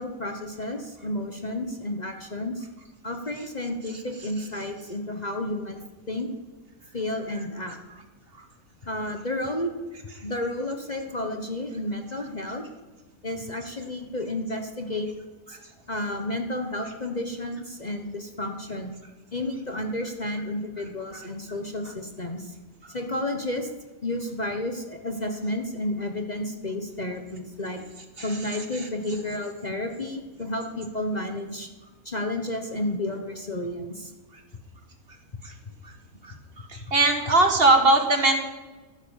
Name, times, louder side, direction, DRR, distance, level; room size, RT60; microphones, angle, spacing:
voice 1, 0.0-2.7 3.0-6.3 6.9-7.8 8.8-9.7 10.2-12.6 13.2-15.1 15.5-15.6 15.9-18.9 19.3-22.5 22.9-23.7 24.0-27.8 28.2-31.7 32.0-34.1, left 1 dB, 30° left, 4 dB, 1.1 m, -31 dB
voice 2, 36.9-38.4, right 2 dB, 40° right, 5 dB, 1.6 m, -19 dB
13.5 x 10.0 x 7.3 m, 1.2 s
omnidirectional pair, 1.6 m